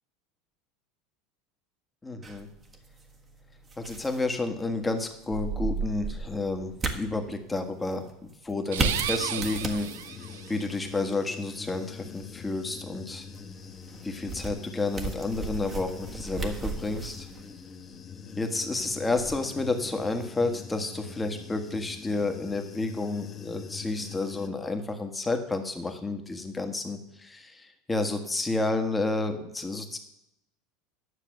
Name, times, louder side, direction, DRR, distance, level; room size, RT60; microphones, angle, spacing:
voice 1, 2.0-2.5 3.8-9.9 10.5-13.2 14.0-17.3 18.4-30.0, left 3 dB, 15° left, 5 dB, 1.6 m, -30 dB
sound 1, 2.2-20.3, right 4 dB, 30° right, 1.5 m, -37 dB
sound 2, 8.6-10.6, right 11 dB, 75° right, 0.5 m, -33 dB
Human voice / Buzz, 8.7-24.5, left 6 dB, 35° left, 1.2 m, -44 dB
10.0 x 6.6 x 6.5 m, 0.82 s
hypercardioid pair, 80°, 0 cm